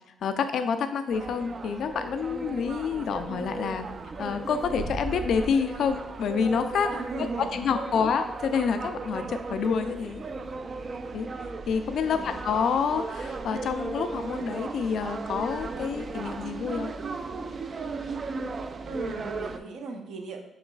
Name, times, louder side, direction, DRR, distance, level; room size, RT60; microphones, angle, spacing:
voice 1, 0.2-3.9 4.2-6.9 7.5-10.2 11.1-11.3 11.7-16.9, left 6 dB, 65° left, 8 dB, 0.3 m, -28 dB
sound 1, 1.1-19.6, right 3 dB, 40° right, 0.3 m, -36 dB
voice 2, 6.8-7.6 7.9-8.1 12.1-12.4 18.8-20.5, right 3 dB, 75° right, 4 dB, 0.7 m, -37 dB
7.0 x 3.0 x 2.3 m, 0.94 s
cardioid pair, 90°, 0 cm